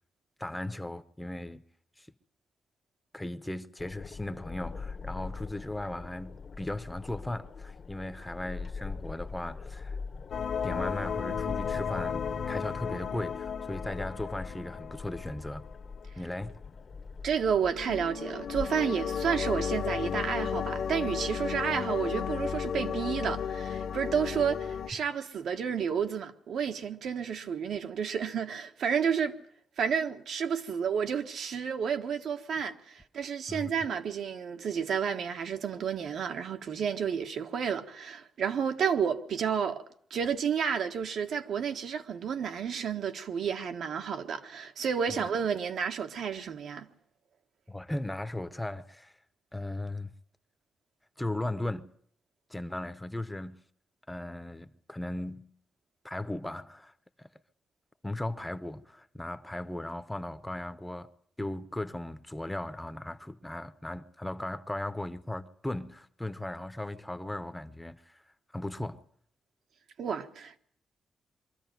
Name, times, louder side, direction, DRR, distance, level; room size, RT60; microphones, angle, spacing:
voice 1, 0.4-1.6 2.0-2.1 3.1-10.0 10.6-15.7 16.2-16.6 33.5-33.7 45.1-45.2 47.7-49.1 49.5-50.1 51.2-51.9 52.5-53.6 54.1-55.5 56.0-56.9 57.2-57.3 58.0-61.1 61.4-68.2 68.5-69.0, left 1 dB, 10° left, 0.8 m, -37 dB
sound 1, 3.8-18.7, left 5 dB, 45° left, 1.1 m, -42 dB
sound 2, 10.3-15.6 17.6-24.9, left 7 dB, 75° left, 1.6 m, -34 dB
voice 2, 17.2-29.3 29.8-39.8 40.1-46.9 70.0-70.6, right 7 dB, 75° right, 1.4 m, -31 dB
23.5 x 13.5 x 9.2 m
wide cardioid pair, 130°, 0 cm